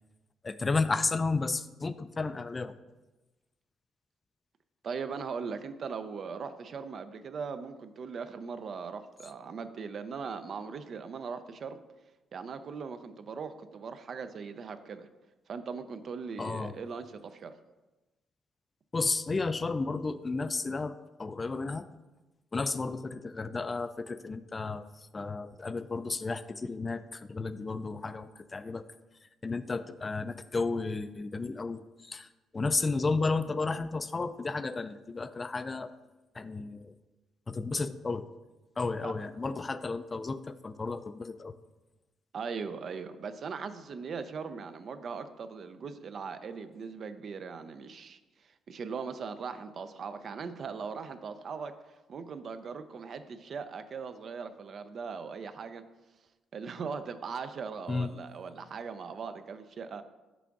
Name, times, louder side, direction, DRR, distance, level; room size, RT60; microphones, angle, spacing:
voice 1, 0.4-2.7 16.4-16.7 18.9-21.9 22.5-28.8 29.4-32.3 32.5-35.9 36.3-36.9 37.5-38.3 38.8-41.6 57.9-58.1, left 3 dB, 30° left, 12 dB, 0.3 m, -33 dB
voice 2, 4.8-11.8 12.3-15.1 15.5-17.6 39.0-39.1 42.3-48.2 48.4-51.7 52.1-55.8 56.5-60.0, right 5 dB, 55° right, 10 dB, 0.4 m, -39 dB
6.0 x 3.5 x 5.9 m, 1.1 s
cardioid pair, 90°, 0 cm